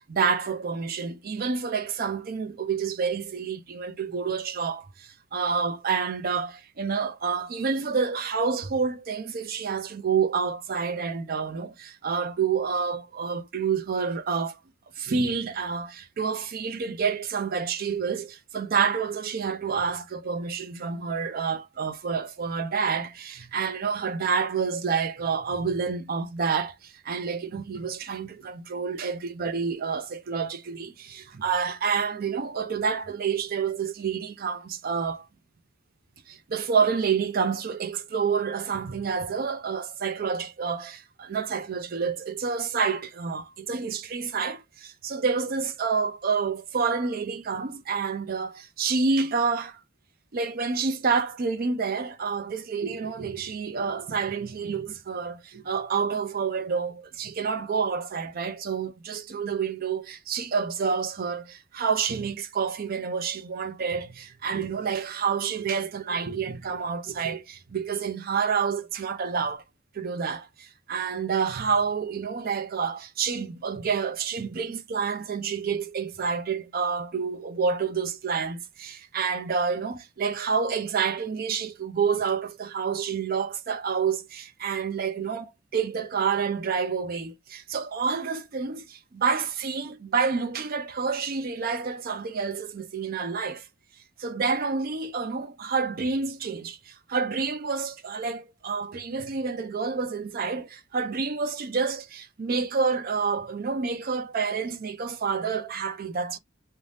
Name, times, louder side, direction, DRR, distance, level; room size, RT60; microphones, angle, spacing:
voice 1, 0.0-14.6 15.0-35.3 36.3-49.8 50.3-69.6 69.9-93.7 94.2-106.4, right 5 dB, 45° right, 0.4 m, -28 dB
2.5 x 2.2 x 3.2 m
head